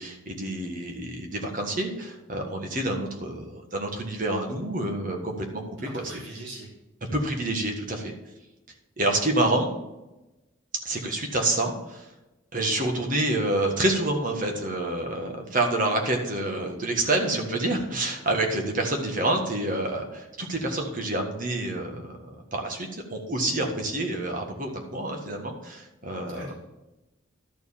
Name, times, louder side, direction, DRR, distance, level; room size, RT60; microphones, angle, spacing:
voice 1, 0.0-5.6 5.9-6.0 7.1-8.1 9.0-9.7 10.8-12.1 12.5-22.2 22.5-26.5, right 2 dB, 40° right, 2 dB, 1.6 m, -28 dB
voice 2, 5.8-6.7 26.3-26.5, right 1 dB, 75° right, -5 dB, 3.5 m, -41 dB
12.0 x 4.6 x 7.3 m, 1.0 s
head